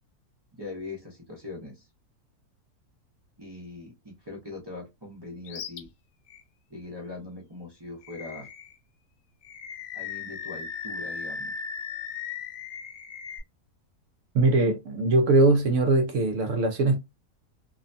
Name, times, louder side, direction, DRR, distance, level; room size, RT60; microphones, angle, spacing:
voice 1, 0.5-1.9 3.4-5.9 6.7-8.5 9.9-11.5, left 3 dB, 35° right, 0.4 m, -41 dB
Animal, 5.4-5.8 6.3-6.4 8.0-8.8 9.4-13.4, left 6 dB, 80° left, 1.1 m, -37 dB
voice 2, 14.3-17.0, right 2 dB, 70° right, 0.8 m, -21 dB
2.7 x 2.1 x 2.5 m
omnidirectional pair, 1.6 m